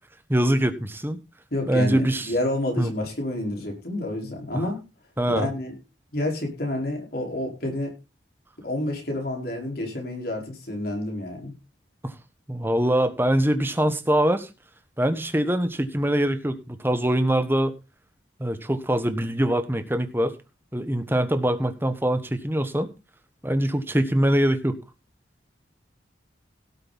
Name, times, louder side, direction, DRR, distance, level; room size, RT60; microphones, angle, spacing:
voice 1, 0.3-1.2 1.7-2.3 2.8-2.9 4.5-4.6 5.2-5.5 12.0-12.1 12.5-14.5 15.0-17.7 18.4-20.4 20.7-22.9 23.4-24.8, right 1 dB, 10° right, 10 dB, 1.3 m, -23 dB
voice 2, 1.5-4.8 5.3-5.8 6.1-7.9 8.6-11.5, left 1 dB, 55° left, 1 dB, 4.9 m, -29 dB
17.5 x 7.7 x 4.2 m, 0.29 s
head